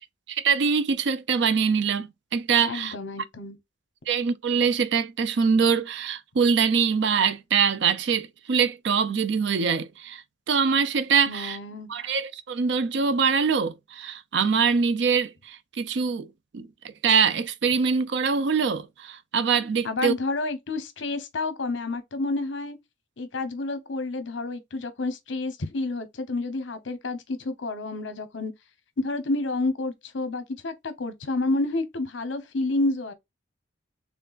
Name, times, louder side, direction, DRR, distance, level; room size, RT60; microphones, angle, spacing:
voice 1, 0.3-2.9 4.1-11.6 11.9-16.3 16.5-16.7 17.0-20.1, right 6 dB, 60° right, 0.4 m, -24 dB
voice 2, 2.7-3.6 11.3-11.9 19.8-22.8 23.2-28.5 29.0-33.1, left 2 dB, 70° left, 0.9 m, -29 dB
4.4 x 3.5 x 2.4 m
head